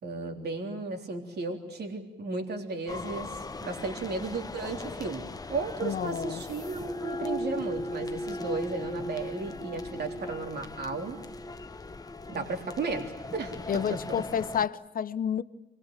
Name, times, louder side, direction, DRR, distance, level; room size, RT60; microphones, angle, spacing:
voice 1, 0.0-5.2 5.5-11.2 12.3-14.0, right 3 dB, 55° right, 3.6 m, -34 dB
sound 1, 2.9-14.7, left 2 dB, 20° left, 0.9 m, -38 dB
voice 2, 5.8-6.4 13.7-15.4, left 8 dB, 45° left, 1.0 m, -30 dB
26.0 x 21.0 x 9.1 m
cardioid pair, 90°, 20 cm